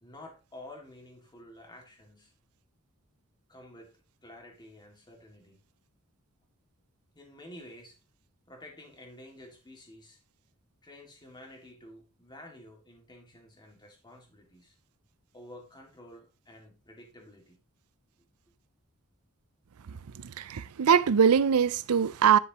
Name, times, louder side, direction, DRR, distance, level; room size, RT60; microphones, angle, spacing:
voice 1, 0.0-2.3 3.5-5.6 7.2-8.0 8.5-10.2 10.8-14.7 15.3-17.6, left 1 dB, 20° left, 2.2 m, -50 dB
voice 2, 19.9-22.4, right 7 dB, 75° right, 0.5 m, -23 dB
10.5 x 6.6 x 3.0 m
head